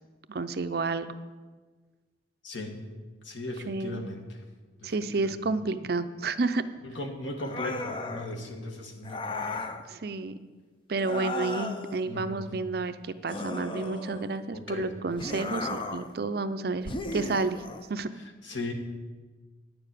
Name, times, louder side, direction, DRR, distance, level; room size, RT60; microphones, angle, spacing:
voice 1, 0.3-1.2 3.7-4.0 4.8-6.7 9.9-10.4 10.9-17.6 17.9-18.1, right 3 dB, 55° right, 11 dB, 0.5 m, -30 dB
voice 2, 2.4-2.8 3.2-4.4 4.8-5.3 6.8-9.7 12.0-12.5 14.5-14.9 18.4-18.7, left 2 dB, 80° left, 4 dB, 1.6 m, -37 dB
sound 1, 7.4-8.3 9.0-9.8 11.0-12.0 13.3-14.4 15.2-16.1 16.9-17.9, left 2 dB, 25° left, 0.6 m, -35 dB
9.7 x 7.0 x 8.3 m, 1.4 s
head